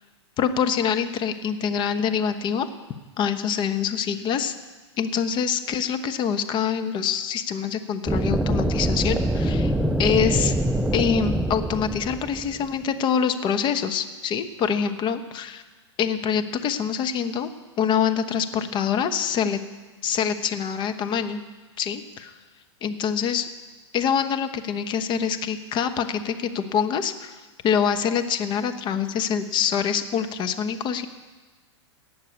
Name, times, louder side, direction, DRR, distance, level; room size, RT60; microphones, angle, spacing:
voice 1, 0.4-2.7 3.2-4.5 5.0-9.7 10.0-10.5 10.9-15.6 16.0-17.5 17.8-19.6 20.0-21.4 21.8-22.3 22.8-23.5 23.9-27.4 27.6-31.1, left 7 dB, 30° left, 8 dB, 1.1 m, -25 dB
sound 1, 8.1-12.8, right 1 dB, 5° right, 0.4 m, -24 dB
17.5 x 6.6 x 8.5 m, 1.3 s
hypercardioid pair, 120°, 15 cm